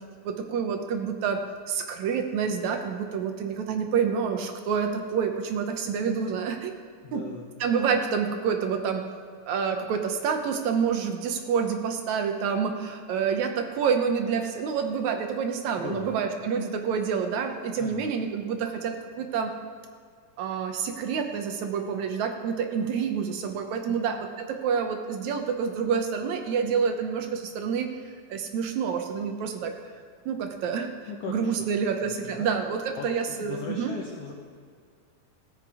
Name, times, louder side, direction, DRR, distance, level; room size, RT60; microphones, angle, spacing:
voice 1, 0.2-6.7 7.1-7.2 7.6-9.0 9.5-19.5 20.4-27.9 28.3-29.7 30.3-30.9 31.3-33.9, right 6 dB, 70° right, 5 dB, 1.8 m, -28 dB
voice 2, 7.0-7.5 15.8-16.2 17.8-18.1 23.9-24.0 31.1-31.7 32.0-32.5 32.9-34.3, left 6 dB, 80° left, 0 dB, 1.3 m, -38 dB
17.0 x 8.8 x 4.8 m, 2.1 s
omnidirectional pair, 4.1 m